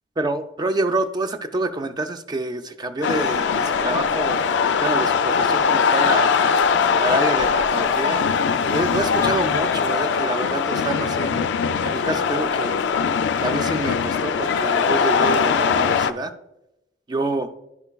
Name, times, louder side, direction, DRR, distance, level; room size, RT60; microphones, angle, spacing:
voice 1, 0.2-4.4 4.8-6.3 7.0-8.2 8.7-11.4 11.8-12.8 13.4-16.3 17.1-17.5, right 2 dB, 20° right, 8 dB, 0.4 m, -27 dB
sound 1, 3.0-16.1, left 6 dB, 60° left, 0.3 m, -21 dB
11.0 x 5.4 x 2.3 m, 0.88 s
head